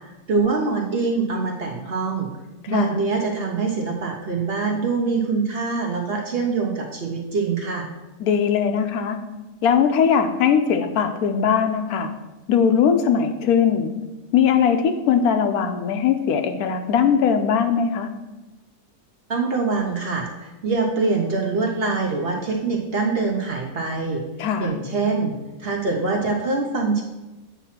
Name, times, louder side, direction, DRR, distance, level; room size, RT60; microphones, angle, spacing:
voice 1, 0.3-2.3 2.7-7.9 19.3-24.2 24.6-25.3 25.6-27.0, right 4 dB, 50° right, 0 dB, 0.8 m, -24 dB
voice 2, 2.6-3.0 8.2-9.2 9.6-12.1 12.5-13.9 14.3-18.1 24.4-24.7, left 7 dB, 80° left, 7 dB, 1.1 m, -20 dB
8.2 x 3.0 x 5.7 m, 1.1 s
omnidirectional pair, 1.6 m